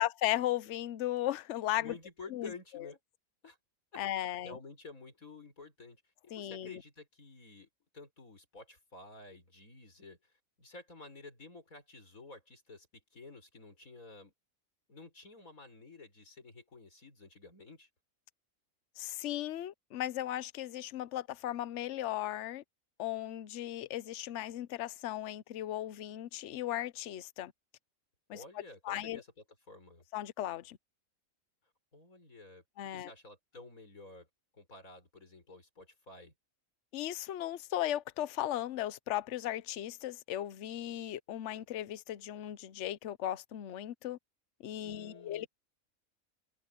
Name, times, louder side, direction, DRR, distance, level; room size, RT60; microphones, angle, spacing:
voice 1, 0.0-1.9 2.3-2.5 4.0-4.6 6.3-6.8 19.0-22.6 23.0-27.5 28.3-28.4 28.8-29.2 30.1-30.8 32.8-33.1 36.9-44.2 44.6-45.5, left 13 dB, 65° left, 1.0 m, -36 dB
voice 2, 1.8-3.0 3.4-3.6 3.9-7.7 7.9-10.3 10.6-14.3 14.9-17.9 28.3-29.3 29.7-30.0 31.9-34.3 34.5-36.3 44.8-45.5, left 3 dB, 80° left, 5.9 m, -52 dB
omnidirectional pair, 1.4 m